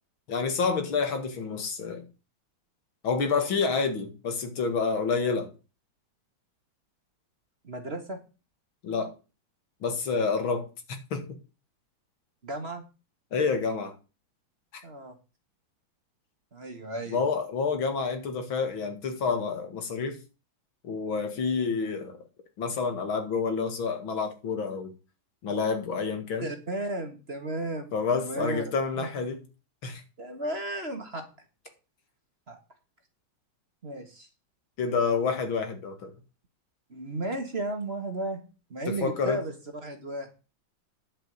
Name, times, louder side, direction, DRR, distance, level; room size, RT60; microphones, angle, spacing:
voice 1, 0.3-2.1 3.0-5.5 8.8-9.1 9.8-10.7 11.1-11.2 13.3-13.9 14.7-14.8 17.1-20.2 20.8-22.2 22.6-24.9 25.4-26.5 27.9-29.4 29.8-30.0 34.8-36.1 38.9-39.4, left 5 dB, 85° left, 2.6 m, -28 dB
voice 2, 7.6-8.2 12.4-12.8 14.8-15.1 16.5-17.2 26.4-28.6 29.0-29.1 30.2-31.2 32.5-32.6 33.8-34.3 36.9-38.4 38.7-39.5 39.8-40.3, right 1 dB, 35° right, 1.8 m, -34 dB
10.5 x 5.4 x 7.9 m
omnidirectional pair, 2.1 m